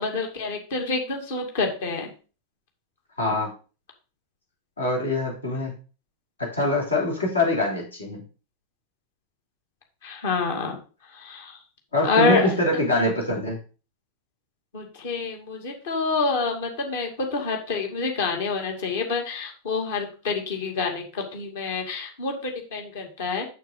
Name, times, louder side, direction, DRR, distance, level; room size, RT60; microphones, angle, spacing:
voice 1, 0.0-2.1 10.0-11.6 12.0-12.6 14.7-23.5, left 4 dB, 55° left, 2 dB, 2.3 m, -27 dB
voice 2, 3.2-3.5 4.8-5.7 6.4-8.2 11.9-13.6, left 2 dB, 75° left, -1 dB, 3.2 m, -24 dB
7.0 x 6.5 x 3.9 m, 0.35 s
figure-of-eight pair, 90°, 0 cm